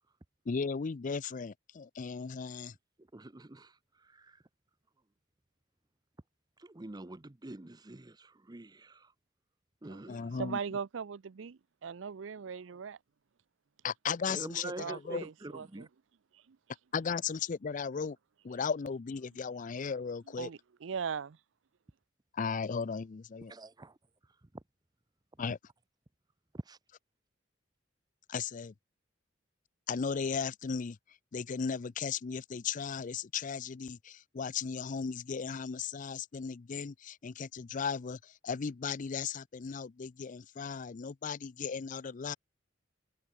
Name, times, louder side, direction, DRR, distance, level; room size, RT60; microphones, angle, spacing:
voice 1, 0.5-2.7 10.1-10.6 13.8-15.2 16.9-18.2 18.4-20.5 22.3-23.5 25.4-25.6 28.3-28.7 29.9-31.0 31.3-42.4, left 6 dB, 45° left, 0.5 m, -36 dB
voice 2, 3.1-3.7 4.1-4.4 6.6-9.1 9.8-10.4 14.3-15.9 23.5-23.9 26.7-26.8, right 2 dB, 20° right, 0.7 m, -46 dB
voice 3, 10.3-13.0 14.8-15.9 16.5-16.6 20.4-21.4, right 6 dB, 85° right, 0.5 m, -39 dB
head